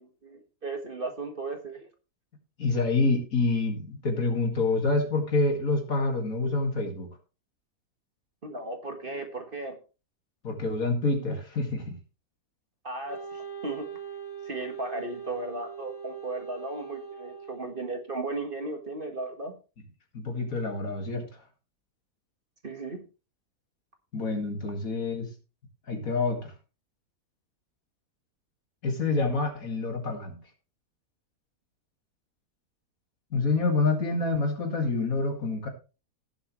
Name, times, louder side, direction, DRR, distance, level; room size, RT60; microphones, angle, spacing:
voice 1, 0.0-1.9 8.4-9.8 12.8-13.9 14.4-19.6 22.6-23.0, right 2 dB, 35° right, 5 dB, 1.8 m, -36 dB
voice 2, 2.6-7.1 10.4-12.0 20.1-21.3 24.1-25.3 25.9-26.5 28.8-30.4 33.3-35.7, left 3 dB, 60° left, 4 dB, 2.6 m, -27 dB
Wind instrument woodwind instrument, 13.1-18.2, right 6 dB, 20° left, 5.8 m, -41 dB
17.5 x 7.3 x 3.2 m, 0.31 s
omnidirectional pair, 1.7 m